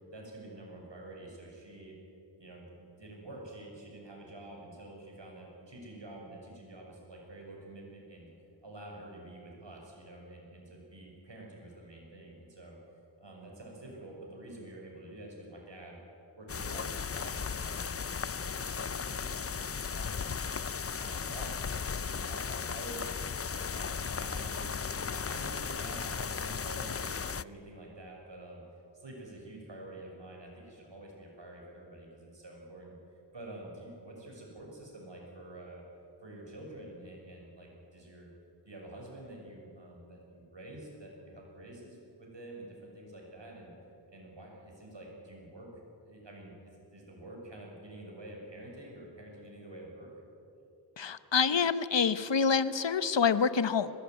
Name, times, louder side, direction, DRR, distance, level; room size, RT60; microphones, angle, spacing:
voice 1, 0.1-1.9 2.4-8.3 8.6-12.8 13.2-16.0 16.4-20.4 21.0-23.3 23.7-28.6 28.9-32.9 33.3-35.8 36.2-38.3 38.6-43.7 44.1-45.7 46.0-50.1, right 1 dB, 80° right, -1 dB, 6.4 m, -48 dB
sound 1, 16.5-27.4, left 6 dB, 35° left, 0.5 m, -36 dB
voice 2, 51.0-53.9, left 6 dB, 85° left, 14 dB, 0.9 m, -27 dB
21.5 x 19.5 x 9.5 m, 2.8 s
wide cardioid pair, 55°, 43 cm